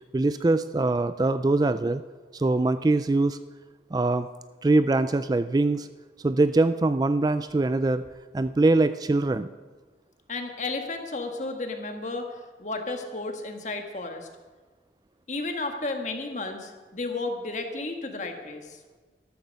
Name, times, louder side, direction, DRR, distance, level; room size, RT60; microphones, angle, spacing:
voice 1, 0.0-2.0 2.3-3.4 3.9-4.3 4.6-5.9 6.2-8.0 8.3-9.5, right 2 dB, 20° right, 12 dB, 0.3 m, -23 dB
voice 2, 10.3-12.3 12.6-14.3 15.3-18.8, left 3 dB, 45° left, 4 dB, 1.6 m, -33 dB
13.0 x 13.0 x 5.3 m, 1.4 s
head